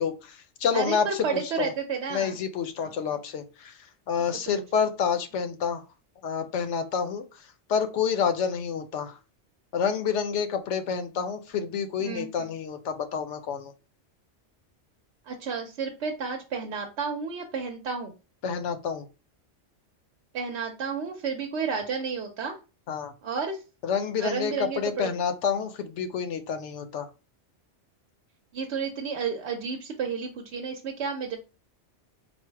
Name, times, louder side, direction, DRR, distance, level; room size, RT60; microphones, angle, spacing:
voice 1, 0.0-1.7 2.1-5.8 6.2-7.2 7.7-9.2 9.7-13.7 18.4-19.1 22.9-23.1 23.8-27.1, left 6 dB, 75° left, 9 dB, 0.9 m, -28 dB
voice 2, 0.7-2.4 2.8-3.1 12.0-12.5 15.3-18.1 20.3-22.6 23.2-23.6 24.2-25.1 28.5-31.4, right 5 dB, 70° right, 3 dB, 0.9 m, -31 dB
4.3 x 2.1 x 4.5 m, 0.31 s
omnidirectional pair, 1.2 m